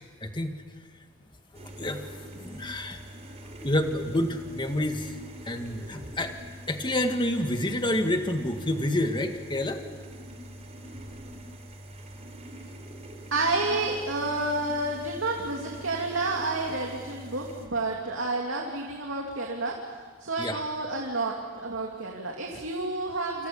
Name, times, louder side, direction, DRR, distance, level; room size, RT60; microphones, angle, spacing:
voice 1, 0.2-0.6 1.8-2.0 2.3-3.0 3.6-5.1 5.5-6.3 6.7-9.8 20.4-20.6, left 1 dB, 25° left, 5 dB, 2.0 m, -28 dB
sound 1, 1.5-17.7, right 1 dB, 35° right, 3.8 m, -44 dB
voice 2, 13.3-19.9 20.2-23.5, right 2 dB, 70° right, 0 dB, 3.0 m, -30 dB
28.5 x 27.0 x 7.1 m, 1.5 s
head